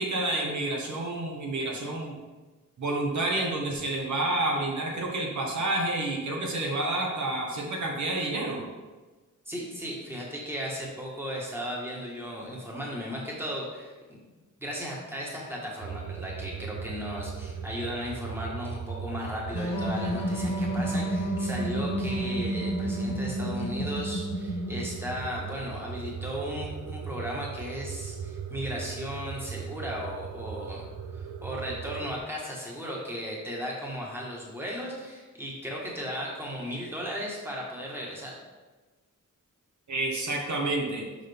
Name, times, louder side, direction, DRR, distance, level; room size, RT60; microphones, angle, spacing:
voice 1, 0.0-2.2 2.8-8.6 39.9-41.0, right 2 dB, 65° right, -1 dB, 1.3 m, -29 dB
voice 2, 9.5-14.2 14.6-30.8 31.1-38.4, equal, 5° right, -3 dB, 1.4 m, -36 dB
sound 1, 15.8-32.2, right 7 dB, 85° right, 0.5 m, -38 dB
sound 2, 19.5-25.2, right 1 dB, 70° left, 1.2 m, -30 dB
6.5 x 5.8 x 3.5 m, 1.3 s
wide cardioid pair, 135°, 32 cm